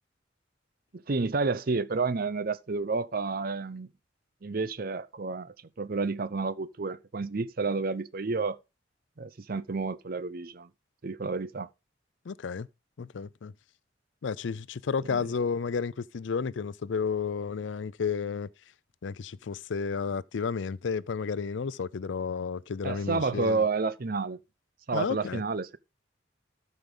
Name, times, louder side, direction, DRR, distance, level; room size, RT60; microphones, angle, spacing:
voice 1, 0.9-3.9 4.4-8.6 9.2-10.7 11.0-11.7 15.1-15.2 22.8-24.4 24.9-25.8, right 4 dB, 50° right, 0.6 m, -30 dB
voice 2, 12.3-12.7 13.0-13.5 14.2-18.5 19.0-23.6 24.9-25.4, left 5 dB, 85° left, 0.5 m, -32 dB
13.0 x 5.3 x 3.8 m
head